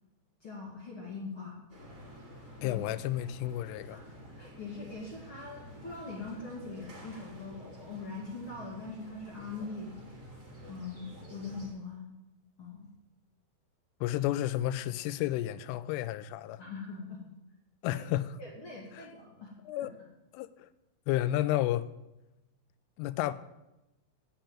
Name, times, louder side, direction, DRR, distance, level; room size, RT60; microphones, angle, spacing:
voice 1, 0.4-1.6 2.6-2.8 3.9-10.0 10.7-12.0 12.6-12.9 16.6-17.2 17.8-18.0 18.4-19.5 19.8-20.1, left 3 dB, 60° left, 1.3 m, -42 dB
sound 1, 1.7-11.7, equal, 25° right, 1.8 m, -50 dB
voice 2, 2.6-4.0 14.0-16.6 17.8-18.4 18.9-19.1 19.7-19.9 20.3-20.7 21.1-21.9 23.0-23.3, left 14 dB, 85° left, 3.0 m, -31 dB
9.0 x 7.7 x 8.6 m
omnidirectional pair, 5.7 m